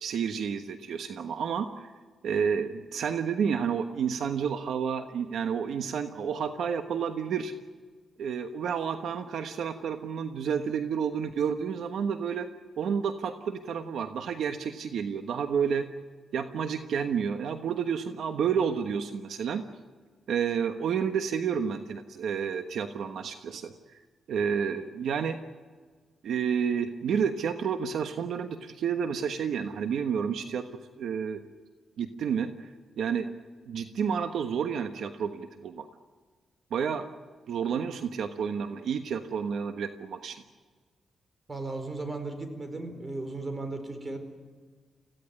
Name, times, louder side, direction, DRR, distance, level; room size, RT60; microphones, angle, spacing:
voice 1, 0.0-1.9 2.2-7.5 8.2-12.5 12.8-15.8 16.3-19.6 20.3-24.0 24.3-25.4 26.2-30.7 31.0-31.5 32.0-33.3 33.7-35.9 36.7-37.1 37.5-40.4, right 7 dB, 80° right, 8 dB, 1.2 m, -30 dB
voice 2, 41.5-44.2, right 2 dB, 30° right, 8 dB, 4.4 m, -36 dB
25.5 x 16.0 x 9.7 m, 1.5 s
cardioid pair, 95°, 0 cm